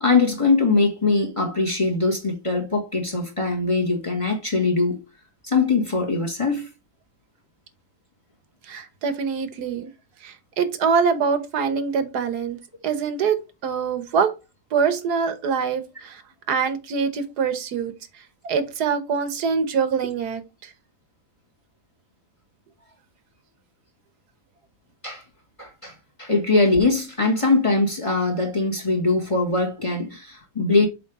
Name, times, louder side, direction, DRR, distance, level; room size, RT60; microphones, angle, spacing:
voice 1, 0.0-5.0 5.4-6.7 25.0-25.2 25.6-30.9, left 3 dB, 20° left, 1.2 m, -22 dB
voice 2, 8.7-9.9 10.2-12.6 12.8-13.4 13.6-14.3 14.7-16.2 16.5-17.9 18.4-20.4, right 6 dB, 80° right, 1.6 m, -24 dB
7.6 x 3.4 x 4.7 m
omnidirectional pair, 1.7 m